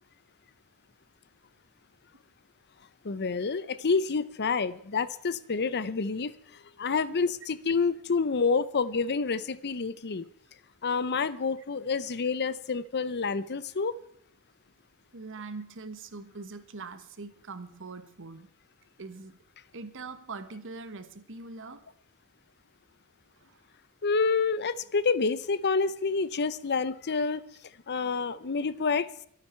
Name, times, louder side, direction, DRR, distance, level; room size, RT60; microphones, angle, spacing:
voice 1, 3.0-6.3 6.8-10.3 10.8-14.0 24.0-27.4 27.9-29.1, left 4 dB, 50° left, 16 dB, 0.7 m, -28 dB
voice 2, 15.1-18.5 19.0-19.4 19.7-21.8 23.4-23.6, right 3 dB, 60° right, 11 dB, 1.4 m, -42 dB
24.5 x 9.0 x 4.5 m, 0.69 s
head